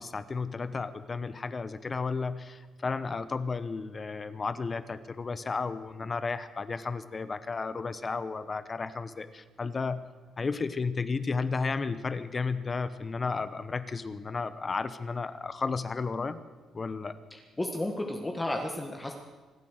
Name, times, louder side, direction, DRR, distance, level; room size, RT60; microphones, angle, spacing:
voice 1, 0.0-10.0 10.4-16.4 16.7-17.2, left 4 dB, 35° left, 13 dB, 1.0 m, -33 dB
voice 2, 17.3-19.1, left 1 dB, 15° left, 2 dB, 1.7 m, -33 dB
25.0 x 8.6 x 6.5 m, 1.3 s
cardioid pair, 90°, 0 cm